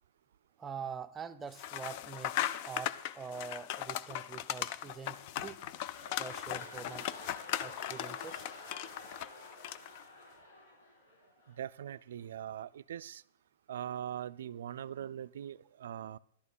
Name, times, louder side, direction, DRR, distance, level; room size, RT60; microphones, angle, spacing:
voice 1, 0.6-5.6 6.2-7.1 7.6-8.5, right 6 dB, 15° right, 0.6 m, -45 dB
sound 1, 1.5-10.0, left 12 dB, 50° left, 0.4 m, -38 dB
sound 2, 5.2-11.7 12.2-12.3, left 2 dB, 85° left, 4.8 m, -51 dB
voice 2, 11.6-13.2 13.7-16.2, right 10 dB, 75° right, 0.4 m, -41 dB
11.5 x 8.5 x 5.5 m
hypercardioid pair, 135°, 0 cm